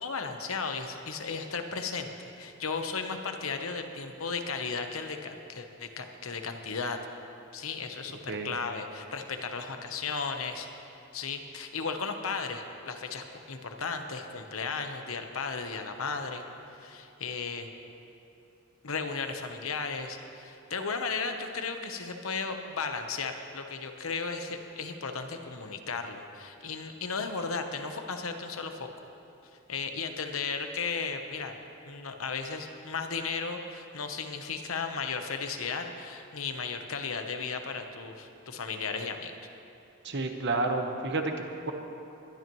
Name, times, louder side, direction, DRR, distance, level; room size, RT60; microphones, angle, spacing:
voice 1, 0.0-7.0 7.5-10.7 11.1-16.4 16.7-17.7 18.8-28.9 29.7-31.6 31.8-39.3, left 5 dB, 90° left, 6 dB, 1.0 m, -35 dB
voice 2, 40.0-41.7, right 2 dB, 60° right, 5 dB, 1.1 m, -30 dB
21.0 x 12.0 x 3.1 m, 2.8 s
head